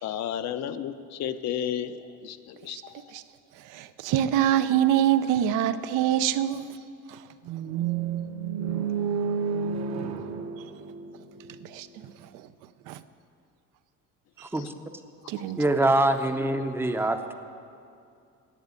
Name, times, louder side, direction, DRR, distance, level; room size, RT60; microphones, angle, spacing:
voice 1, 0.0-2.9, left 9 dB, 60° left, 0.7 m, -32 dB
voice 2, 3.6-6.7 7.1-7.2 11.6-12.4 12.9-13.0 14.4-14.5 15.3-15.6, right 11 dB, 80° right, 0.6 m, -25 dB
sound 1, 7.4-11.6, right 7 dB, 60° right, 1.0 m, -30 dB
voice 3, 15.6-17.3, right 1 dB, 10° right, 0.6 m, -24 dB
11.0 x 7.9 x 9.5 m
cardioid pair, 145°, 31 cm